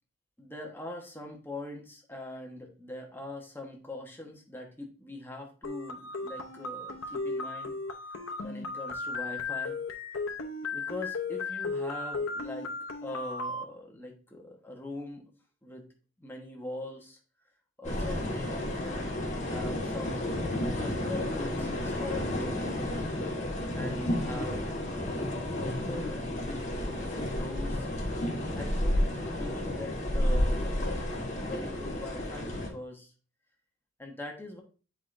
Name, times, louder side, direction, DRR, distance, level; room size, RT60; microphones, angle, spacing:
voice 1, 0.4-7.8 8.4-9.8 10.7-12.7 13.0-15.2 15.6-15.9 16.2-17.2 17.8-20.3 20.5-23.0 23.7-24.7 25.5-27.9 28.6-31.1 31.4-33.1 34.0-34.6, left 2 dB, 10° left, 1 dB, 1.2 m, -42 dB
sound 1, 5.6-13.6, left 3 dB, 75° left, 0.8 m, -35 dB
sound 2, 17.8-32.7, left 1 dB, 35° left, 1.4 m, -31 dB
8.1 x 4.8 x 2.6 m, 0.37 s
head